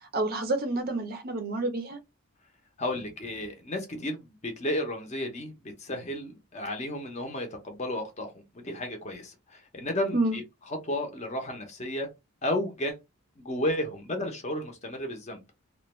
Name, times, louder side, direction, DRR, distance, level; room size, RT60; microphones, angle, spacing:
voice 1, 0.1-2.0 10.1-10.4, right 2 dB, 40° right, 0.5 m, -28 dB
voice 2, 2.8-10.4 10.8-12.1 12.4-13.0 13.4-15.4, left 1 dB, 30° left, 0.6 m, -33 dB
2.3 x 2.1 x 3.0 m
head